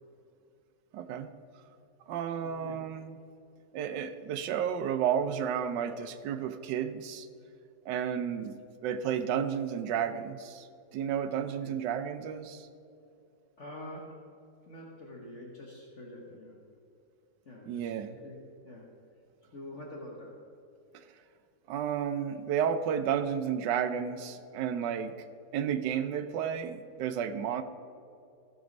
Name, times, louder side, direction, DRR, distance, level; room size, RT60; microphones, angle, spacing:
voice 1, 0.9-1.3 2.1-3.2 3.7-7.3 7.9-12.7 17.7-18.2 20.9-21.1 21.7-25.1 25.5-27.6, right 8 dB, 90° right, 9 dB, 1.3 m, -32 dB
voice 2, 2.4-2.8 11.2-11.7 13.6-14.3 14.7-16.6 17.4-18.4 18.6-18.9 19.5-20.5, left 1 dB, 45° left, -1 dB, 1.4 m, -46 dB
15.0 x 6.2 x 5.2 m, 2.6 s
omnidirectional pair, 1.8 m